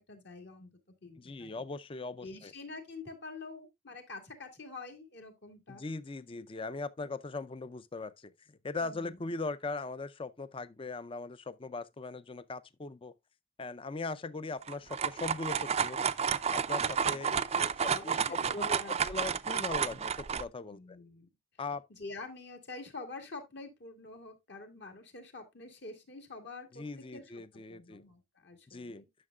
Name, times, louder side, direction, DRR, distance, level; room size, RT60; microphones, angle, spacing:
voice 1, 0.0-1.6 2.2-5.8 8.8-9.3 17.3-19.0 20.7-21.3 21.9-26.8 27.1-29.1, left 3 dB, 60° left, 2.2 m, -47 dB
voice 2, 1.2-2.5 5.7-8.3 8.6-13.1 13.6-16.0 16.5-17.3 17.6-20.8 21.6-21.8 26.7-28.0 28.7-29.0, left 3 dB, 30° left, 0.5 m, -40 dB
sound 1, 14.6-20.4, right 7 dB, 35° right, 0.4 m, -31 dB
11.0 x 6.3 x 2.3 m
head